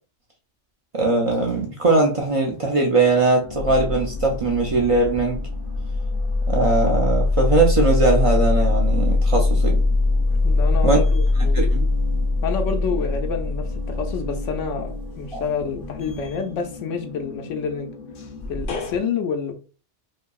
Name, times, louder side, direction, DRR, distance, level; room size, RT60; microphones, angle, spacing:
voice 1, 0.9-5.4 6.5-9.8 10.8-11.0 11.5-11.9 15.3-15.4, right 3 dB, 60° right, 0.3 m, -20 dB
elevator sounds mixdown, 2.0-2.7 3.1-19.0, left 2 dB, 60° left, 0.6 m, -23 dB
voice 2, 10.4-11.7 12.4-17.9 18.5-19.5, left 6 dB, 90° left, 0.9 m, -28 dB
2.6 x 2.6 x 2.3 m
omnidirectional pair, 1.2 m